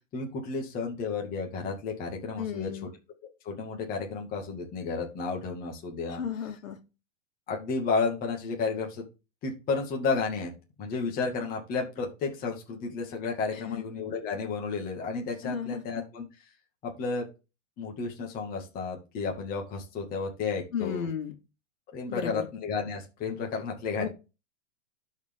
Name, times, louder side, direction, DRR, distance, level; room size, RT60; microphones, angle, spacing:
voice 1, 0.1-2.7 3.4-6.2 7.5-9.0 9.4-10.5 10.8-16.2 16.8-17.3 17.8-21.1 21.9-24.1, left 4 dB, 20° left, 1 dB, 2.3 m, -32 dB
voice 2, 2.4-2.9 6.1-6.8 13.5-13.8 15.4-16.0 20.7-21.3 22.1-22.5 24.0-24.1, left 7 dB, 80° left, 5 dB, 2.5 m, -34 dB
12.0 x 4.9 x 3.8 m, 0.28 s
hypercardioid pair, 160°, 39 cm